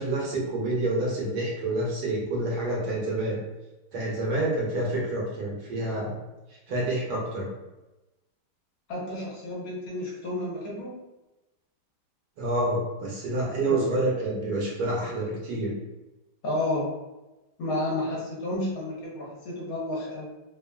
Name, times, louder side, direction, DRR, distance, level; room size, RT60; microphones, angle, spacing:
voice 1, 0.0-3.4 3.9-6.2 6.7-7.5 12.4-15.7, right 2 dB, 70° right, -3 dB, 1.2 m, -28 dB
voice 2, 8.9-11.0 13.7-13.8 16.4-16.9 17.6-20.2, left 1 dB, 65° left, -5 dB, 1.0 m, -31 dB
2.9 x 2.3 x 2.2 m, 1.0 s
omnidirectional pair, 1.9 m